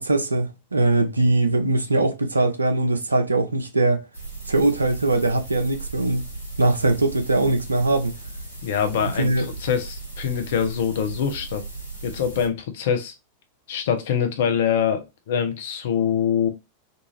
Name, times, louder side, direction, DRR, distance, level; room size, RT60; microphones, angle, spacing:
voice 1, 0.0-4.0 4.5-6.3 6.6-8.1 9.0-9.5, right 2 dB, 80° right, 0.5 m, -21 dB
sound 1, 4.1-12.5, right 3 dB, 85° left, 1.0 m, -37 dB
voice 2, 8.6-11.6 12.0-13.1 13.7-16.5, left 8 dB, 55° left, 0.5 m, -24 dB
2.6 x 2.4 x 3.0 m
figure-of-eight pair, 90°, 0 cm